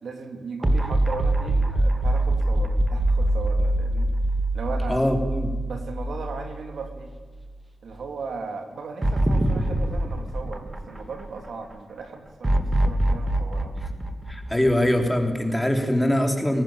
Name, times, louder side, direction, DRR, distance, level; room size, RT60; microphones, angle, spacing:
voice 1, 0.0-4.1 4.5-5.0 5.6-7.1 7.8-13.8, right 4 dB, 75° right, 5 dB, 3.2 m, -37 dB
sound 1, 0.6-7.0 7.3-7.4 9.0-11.5 12.4-15.2, right 1 dB, 20° right, 2.2 m, -24 dB
voice 2, 4.9-5.6 14.3-16.6, left 1 dB, 5° left, 3 dB, 3.4 m, -22 dB
21.5 x 18.0 x 9.0 m, 1.4 s
wide cardioid pair, 125°, 0 cm